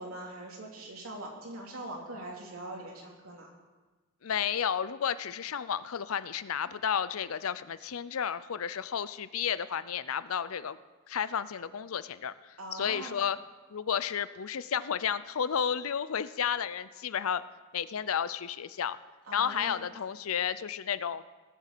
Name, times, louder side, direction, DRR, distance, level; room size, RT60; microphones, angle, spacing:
voice 1, 0.0-3.5 12.6-13.2 19.2-19.9, right 1 dB, 80° right, -1 dB, 3.1 m, -42 dB
voice 2, 4.2-10.8 11.1-13.4 13.7-17.4 17.7-19.0 19.3-21.2, left 8 dB, 80° left, 15 dB, 0.5 m, -32 dB
18.0 x 7.5 x 6.7 m, 1.3 s
head